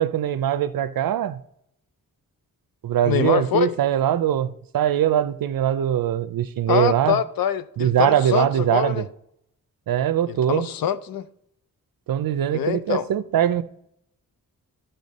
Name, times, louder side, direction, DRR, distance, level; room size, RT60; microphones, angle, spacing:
voice 1, 0.0-1.4 2.8-7.2 7.8-9.1 9.9-10.7 12.1-13.6, right 10 dB, 75° right, 0.6 m, -22 dB
voice 2, 3.0-3.8 6.7-9.1 10.3-11.3 12.5-13.1, left 8 dB, 85° left, 0.6 m, -24 dB
12.0 x 5.6 x 4.1 m
wide cardioid pair, 95°, 35 cm